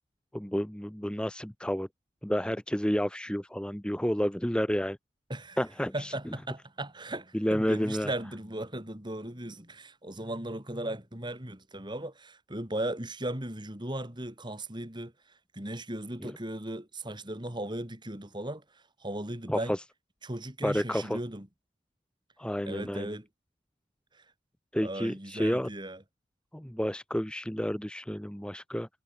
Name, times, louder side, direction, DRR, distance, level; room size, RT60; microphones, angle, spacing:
voice 1, 0.3-1.9 2.2-5.0 5.6-6.3 7.3-8.1 16.2-16.3 19.5-19.8 20.6-21.2 22.4-23.2 24.7-25.7 26.5-28.9, equal, 5° left, 0.9 m, -30 dB
voice 2, 5.9-15.1 15.5-18.6 19.0-19.7 20.2-21.5 22.6-23.3 24.8-26.0, right 1 dB, 20° right, 3.5 m, -37 dB
head